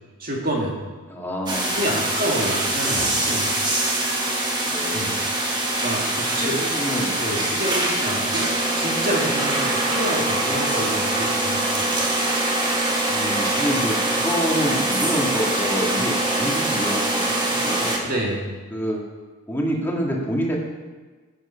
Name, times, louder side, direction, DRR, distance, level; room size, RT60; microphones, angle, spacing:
voice 1, 0.2-0.8 1.7-3.5 4.9-5.2 5.8-6.6 7.2-11.9 18.0-18.5, right 1 dB, 40° right, -1 dB, 2.3 m, -28 dB
voice 2, 1.1-1.7 4.7-5.3 6.4-7.5 9.5-9.8 13.1-18.0 18.7-19.0 19.5-20.6, equal, 10° left, -2 dB, 1.8 m, -27 dB
sound 1, 1.5-18.0, right 1 dB, 20° right, 1.6 m, -23 dB
11.0 x 8.9 x 5.6 m, 1.4 s
head